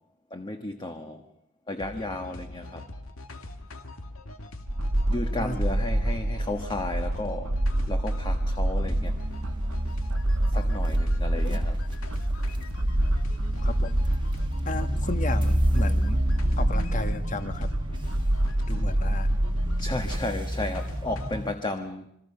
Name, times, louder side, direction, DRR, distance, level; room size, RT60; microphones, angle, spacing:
voice 1, 0.3-1.2 1.7-2.9 5.1-7.6 7.9-9.2 10.5-11.8 19.8-22.1, left 2 dB, 20° left, 6 dB, 1.4 m, -33 dB
sound 1, 1.8-21.4, left 1 dB, 70° left, 2.4 m, -42 dB
sound 2, 4.7-20.2, right 1 dB, 85° right, 1.5 m, -27 dB
sound 3, 8.8-21.5, equal, 20° right, 1.5 m, -31 dB
voice 2, 14.6-16.2 16.6-17.7 18.7-19.3, left 2 dB, 35° left, 9 dB, 1.7 m, -34 dB
27.5 x 22.5 x 5.7 m, 0.76 s
head